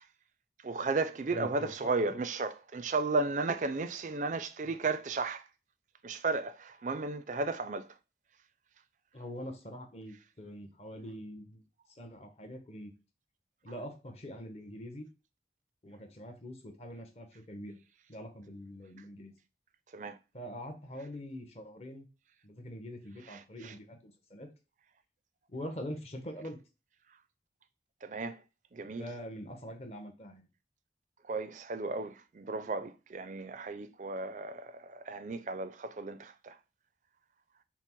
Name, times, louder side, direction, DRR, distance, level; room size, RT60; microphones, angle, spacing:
voice 1, 0.6-5.5 6.0-7.9 19.9-20.2 23.3-23.7 28.0-28.4 28.7-29.0 31.2-36.6, right 3 dB, 45° right, 0.4 m, -34 dB
voice 2, 1.3-2.2 9.1-11.6 11.9-12.9 13.6-15.1 15.8-17.8 18.1-19.3 20.3-22.1 22.4-24.5 25.5-26.6 28.9-30.5, equal, 35° left, 0.9 m, -44 dB
5.9 x 2.0 x 4.4 m
head